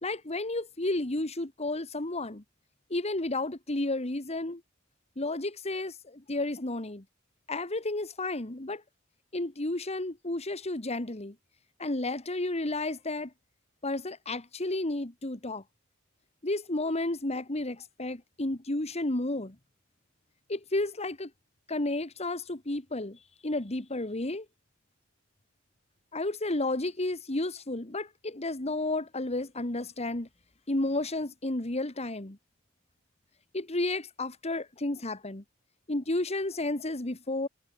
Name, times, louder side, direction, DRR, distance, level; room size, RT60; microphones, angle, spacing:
voice 1, 0.0-2.4 2.9-4.6 5.2-7.0 7.5-8.8 9.3-11.3 11.8-13.3 13.8-15.6 16.4-19.6 20.5-21.3 21.7-24.5 26.1-30.3 30.7-32.4 33.5-35.4 35.9-37.5, left 2 dB, 30° left, 1.9 m, -32 dB
head